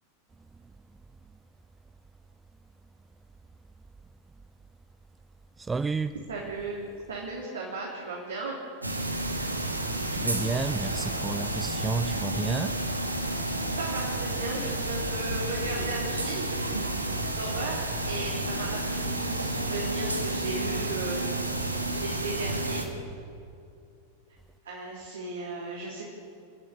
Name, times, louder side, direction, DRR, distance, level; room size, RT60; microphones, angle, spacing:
voice 1, 5.6-6.1 10.1-12.8, right 4 dB, 15° right, 0.4 m, -31 dB
voice 2, 6.3-6.8 7.1-8.5 13.8-16.6 17.4-22.8 24.6-26.0, right 3 dB, 65° right, 3.3 m, -36 dB
sound 1, 8.8-22.9, right 1 dB, 85° right, 1.9 m, -31 dB
29.0 x 10.5 x 8.6 m
figure-of-eight pair, 90°, 0 cm